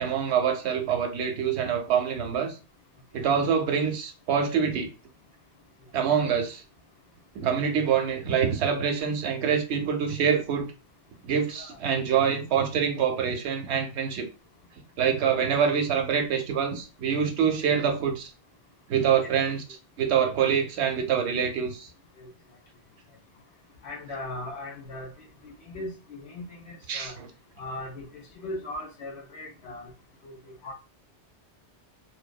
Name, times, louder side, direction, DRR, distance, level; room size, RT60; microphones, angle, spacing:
voice 1, 0.0-2.6 3.1-4.9 5.9-6.6 7.3-10.7 11.2-14.3 15.0-18.3 18.9-19.6 20.0-21.9 26.9-27.3, right 7 dB, 75° right, 0.8 m, -25 dB
voice 2, 20.0-20.3 21.2-21.3 22.2-22.3 23.8-25.1 25.4-27.2 27.6-29.9 30.2-30.4 30.6-30.7, left 1 dB, 70° left, 1.0 m, -39 dB
2.7 x 2.2 x 2.2 m
omnidirectional pair, 1.2 m